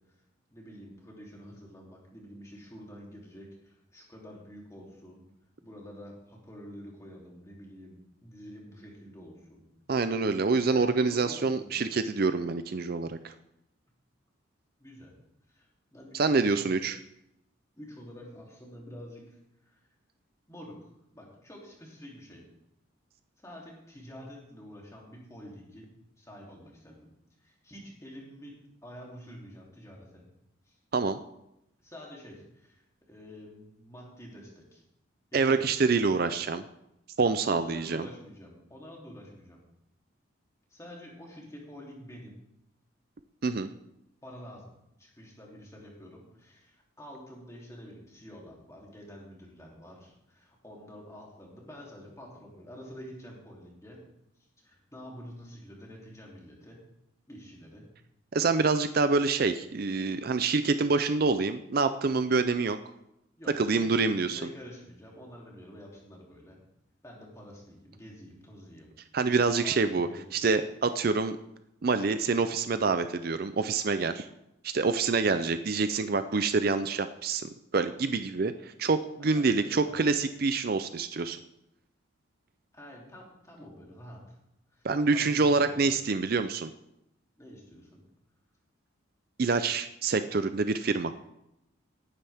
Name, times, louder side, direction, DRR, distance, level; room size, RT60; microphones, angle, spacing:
voice 1, 0.5-5.2 5.6-9.7 10.5-11.8 14.8-15.1 15.5-16.8 17.8-19.4 19.6-19.8 20.5-22.4 23.4-25.9 26.2-27.1 27.4-30.3 30.6-30.8 31.8-32.8 33.1-34.8 35.3-35.6 37.5-39.6 40.7-42.3 44.2-44.6 45.0-54.0 54.6-56.8 57.3-57.9 63.4-66.6 67.0-68.9 69.6-70.6 79.2-80.0 82.7-84.4 84.7-86.1 87.4-88.1, equal, 15° left, -3 dB, 3.0 m, -48 dB
voice 2, 9.9-13.3 16.1-17.0 30.9-31.2 35.3-36.6 37.2-38.1 43.4-43.7 58.3-62.8 63.6-64.4 69.1-71.4 71.8-74.3 74.6-81.4 84.8-86.7 89.4-91.1, right 4 dB, 45° right, 10 dB, 0.5 m, -26 dB
18.5 x 10.0 x 3.5 m, 0.83 s
head